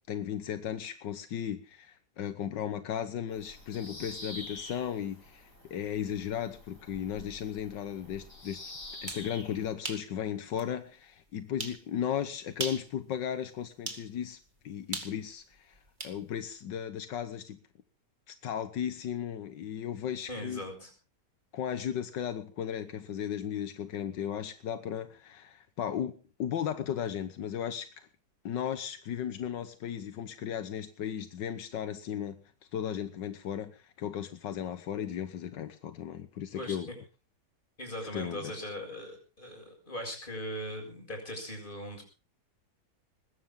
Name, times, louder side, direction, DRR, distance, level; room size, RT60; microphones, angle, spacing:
voice 1, 0.1-8.6 9.0-14.4 14.6-17.6 18.3-20.6 21.5-28.1 28.4-32.4 32.7-36.9 38.1-38.5, left 9 dB, 85° left, 1.7 m, -36 dB
Bird vocalization bird call bird song, 3.3-9.7, left 2 dB, 50° left, 5.3 m, -47 dB
sound 1, 8.9-9.3 9.8-10.1 10.6-10.7 11.6-11.8 12.5-12.9 13.9-14.1 14.9-16.2, right 2 dB, 25° right, 2.3 m, -38 dB
voice 2, 20.3-20.9 36.5-37.0 37.8-42.0, equal, 25° left, 7.1 m, -39 dB
20.5 x 16.0 x 3.8 m
omnidirectional pair, 1.9 m